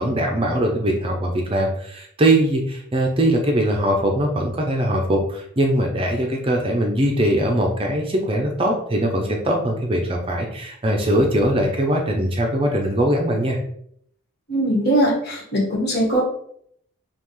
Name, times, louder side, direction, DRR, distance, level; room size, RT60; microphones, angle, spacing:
voice 1, 0.0-13.6, right 1 dB, 25° right, 2 dB, 0.5 m, -21 dB
voice 2, 14.5-16.2, right 1 dB, 50° left, -3 dB, 1.6 m, -20 dB
5.6 x 2.4 x 3.1 m, 0.67 s
head